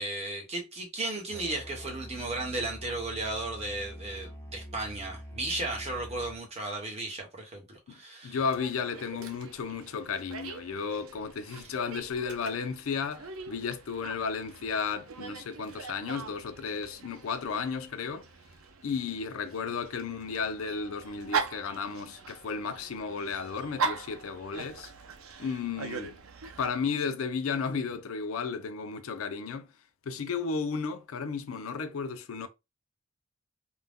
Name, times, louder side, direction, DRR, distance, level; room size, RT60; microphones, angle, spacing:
voice 1, 0.0-8.4 11.6-11.7, right 2 dB, 30° right, 1.0 m, -35 dB
Musical instrument, 1.3-6.4, equal, 10° left, 0.7 m, -44 dB
voice 2, 8.2-18.3 18.8-24.9 25.4-26.2 26.6-29.7 30.1-32.5, left 5 dB, 75° left, 0.5 m, -33 dB
Dog, 8.4-26.7, right 5 dB, 90° right, 0.5 m, -40 dB
2.5 x 2.1 x 3.4 m
head